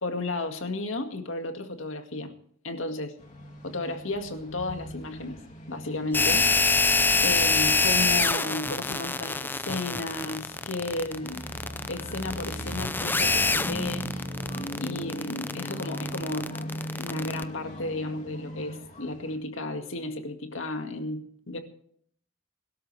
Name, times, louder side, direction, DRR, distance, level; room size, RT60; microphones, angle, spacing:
voice 1, 0.0-2.3 2.6-3.2 3.6-5.4 5.7-6.5 7.2-11.4 11.9-14.1 14.8-16.5 17.0-21.6, left 2 dB, 90° left, 6 dB, 2.1 m, -33 dB
sound 1, 3.2-19.3, equal, 40° left, 3.1 m, -39 dB
sound 2, 6.1-17.4, left 3 dB, 10° left, 0.5 m, -25 dB
22.0 x 13.0 x 3.4 m, 0.63 s
head